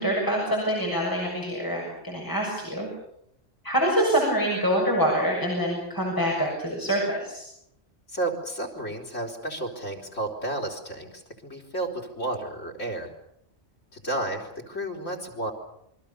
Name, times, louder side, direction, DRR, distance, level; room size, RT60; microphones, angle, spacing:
voice 1, 0.0-2.9 3.6-7.4, equal, 15° left, -3 dB, 6.9 m, -25 dB
voice 2, 8.1-13.1 13.9-15.5, right 2 dB, 80° left, 6 dB, 4.7 m, -32 dB
28.0 x 23.0 x 6.9 m, 0.74 s
omnidirectional pair, 1.3 m